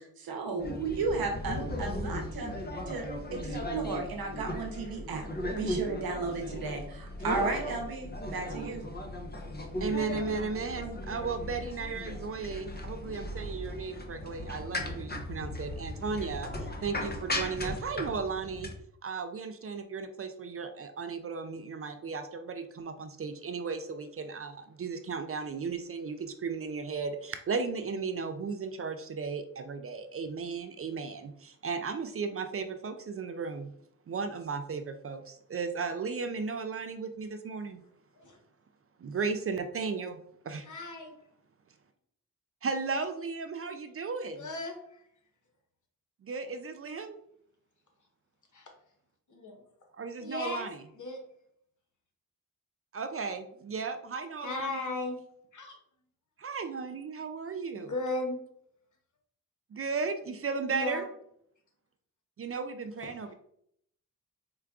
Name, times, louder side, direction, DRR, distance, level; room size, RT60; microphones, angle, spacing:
voice 1, 0.0-2.5 2.9-5.3 5.6-8.9, right 3 dB, 80° right, 3 dB, 0.8 m, -34 dB
sound 1, 0.6-18.7, left 1 dB, 25° left, 0.8 m, -37 dB
voice 2, 9.8-18.7 19.0-33.7 34.1-37.8 39.0-40.2 40.4-40.7 42.6-44.5 46.2-47.2 50.0-50.8 52.9-54.9 56.4-57.9 59.7-61.1 62.4-63.3, right 4 dB, 40° right, 8 dB, 0.4 m, -35 dB
voice 3, 40.7-41.1 44.4-44.8 48.5-48.7 49.3-49.6 50.2-50.7 51.0-51.2 54.4-55.2 55.5-55.8 57.7-58.4 60.7-61.1 63.1-63.3, left 2 dB, 55° left, 2 dB, 1.0 m, -35 dB
4.5 x 2.2 x 2.4 m, 0.69 s
supercardioid pair, 40°, 36 cm